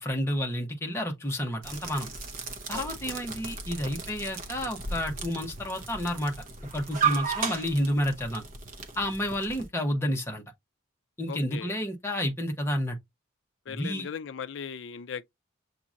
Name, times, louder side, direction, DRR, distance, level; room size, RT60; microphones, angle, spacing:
voice 1, 0.0-2.1 2.7-6.3 6.7-8.4 9.0-10.4 11.2-13.0 13.7-14.1, equal, 10° left, 0.9 m, -30 dB
sound 1, 1.6-9.7, right 5 dB, 40° right, 0.8 m, -35 dB
voice 2, 11.3-11.7 13.7-15.3, left 6 dB, 60° left, 0.4 m, -38 dB
7.2 x 2.8 x 2.5 m
head